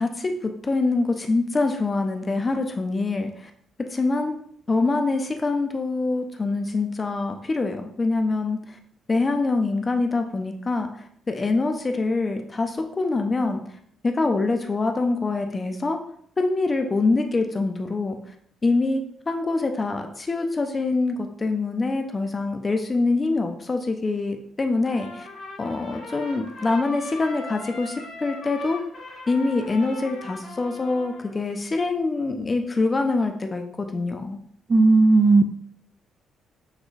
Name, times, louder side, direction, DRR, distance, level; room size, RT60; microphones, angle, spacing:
voice 1, 0.0-3.5 3.9-4.4 4.7-8.8 9.1-13.6 14.0-16.0 16.4-18.2 18.6-25.3 25.6-28.8 29.3-34.4, left 3 dB, 30° left, 5 dB, 0.5 m, -25 dB
Trumpet, 24.9-31.5, left 3 dB, 65° left, 0.9 m, -39 dB
voice 2, 34.7-35.5, right 3 dB, 35° right, 10 dB, 0.3 m, -15 dB
6.4 x 2.3 x 3.1 m, 0.65 s
cardioid pair, 90°, 0 cm